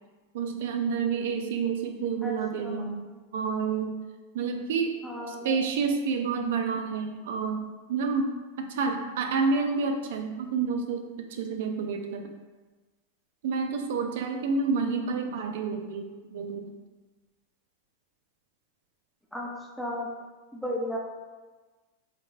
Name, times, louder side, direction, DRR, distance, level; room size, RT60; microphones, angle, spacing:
voice 1, 0.3-4.0 4.3-5.0 5.3-12.3 13.4-16.7, right 5 dB, 70° right, 5 dB, 0.3 m, -29 dB
voice 2, 2.2-2.9 5.0-5.6 19.3-19.5 19.8-20.2 20.5-21.0, left 1 dB, 5° left, -2 dB, 0.5 m, -34 dB
4.0 x 2.0 x 2.5 m, 1.3 s
hypercardioid pair, 120°, 0 cm